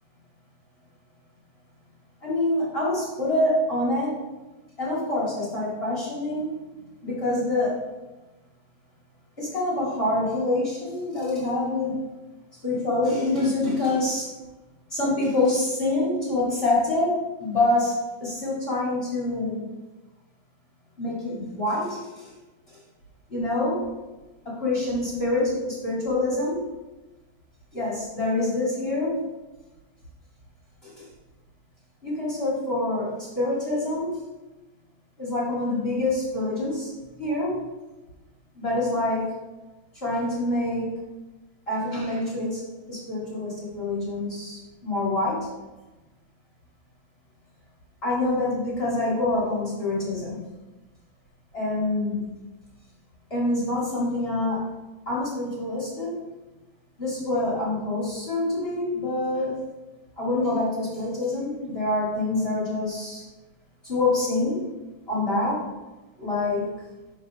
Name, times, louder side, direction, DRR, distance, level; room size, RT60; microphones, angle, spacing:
voice 1, 2.2-4.2 4.8-6.5 7.0-7.8 9.4-12.0 12.6-14.3 14.9-19.7 21.0-22.3 23.3-23.9 24.4-26.6 27.7-29.2 30.8-31.1 32.0-34.2 35.2-36.9 37.2-37.6 38.5-39.4 39.9-41.0 41.7-42.6 42.9-45.5 48.0-50.4 51.5-52.2 53.3-54.7 55.0-56.2 57.0-59.6 60.2-63.2 63.8-64.7 65.1-65.7 66.2-66.7, left 2 dB, 30° left, -7 dB, 1.0 m, -26 dB
7.3 x 4.2 x 5.7 m, 1.1 s
omnidirectional pair, 4.7 m